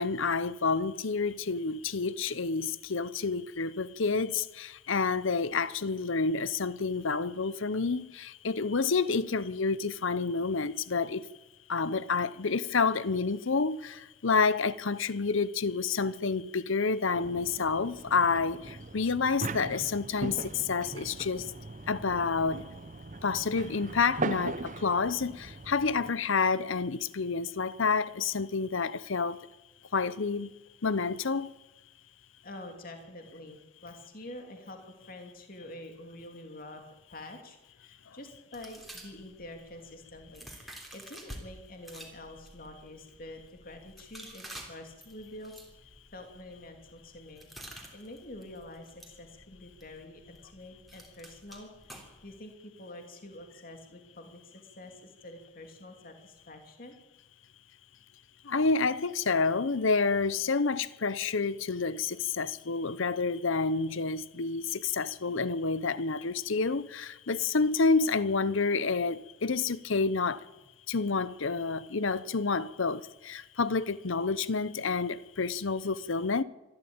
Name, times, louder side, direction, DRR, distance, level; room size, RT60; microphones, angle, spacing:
voice 1, 0.0-11.2 11.7-21.5 21.9-22.6 23.2-29.4 29.9-30.5 30.8-31.5 58.5-70.4 70.9-76.4, left 4 dB, 65° left, 0.8 m, -29 dB
sound 1, 17.1-26.1, right 3 dB, 35° right, 0.8 m, -40 dB
voice 2, 32.4-34.8 35.1-36.8 37.1-45.5 46.1-56.9, left 1 dB, 40° left, 2.8 m, -47 dB
sound 2, 38.5-41.4 41.8-52.4, right 1 dB, ahead, 3.2 m, -50 dB
25.0 x 13.0 x 8.8 m
head